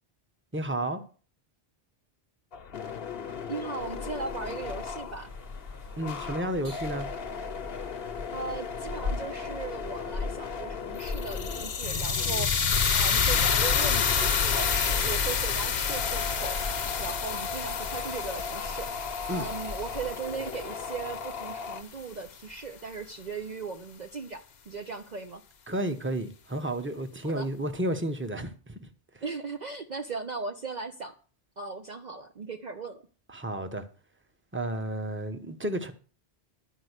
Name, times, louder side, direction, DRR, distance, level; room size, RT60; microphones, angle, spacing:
voice 1, 0.5-1.0 6.0-7.1 19.3-19.5 25.7-28.9 29.1-29.2 33.3-33.8 34.5-35.9, right 1 dB, 10° right, 1.0 m, -32 dB
sound 1, 2.5-21.8, left 5 dB, 65° left, 1.1 m, -38 dB
voice 2, 3.5-5.3 8.3-16.6 17.0-25.4 27.2-27.5 29.2-31.1 31.6-33.0, right 4 dB, 45° right, 0.8 m, -38 dB
sound 2, 3.8-20.1, left 3 dB, 85° right, 4.3 m, -41 dB
sound 3, 11.0-21.1, left 6 dB, 50° left, 0.8 m, -28 dB
12.0 x 5.2 x 8.1 m
omnidirectional pair, 1.1 m